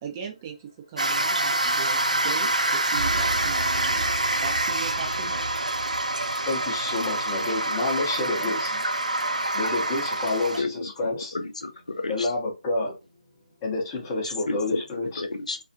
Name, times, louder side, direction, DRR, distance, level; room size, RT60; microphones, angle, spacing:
voice 1, 0.0-4.1 4.4-5.4 8.4-8.8, right 7 dB, 20° right, 0.5 m, -39 dB
sound 1, 1.0-10.6, right 2 dB, 85° right, 0.3 m, -26 dB
sound 2, 2.9-7.7, right 2 dB, 60° right, 0.8 m, -36 dB
voice 2, 6.5-8.7 9.5-11.4 12.1-13.0 13.6-15.2, left 2 dB, 20° left, 0.7 m, -29 dB
voice 3, 10.6-10.9 11.3-12.3 14.5-14.8 15.2-15.6, left 3 dB, 70° left, 0.5 m, -31 dB
2.4 x 2.0 x 2.5 m
figure-of-eight pair, 150°, 4 cm